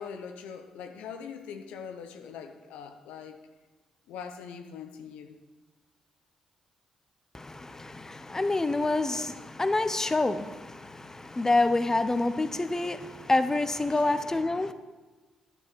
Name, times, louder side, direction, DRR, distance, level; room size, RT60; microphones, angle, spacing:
voice 1, 0.0-3.5 4.1-5.4 13.9-14.0, left 6 dB, 75° left, 6 dB, 0.7 m, -42 dB
voice 2, 7.3-14.7, left 2 dB, 25° left, 11 dB, 0.8 m, -27 dB
10.0 x 8.8 x 4.7 m, 1.3 s
hypercardioid pair, 45°, 2 cm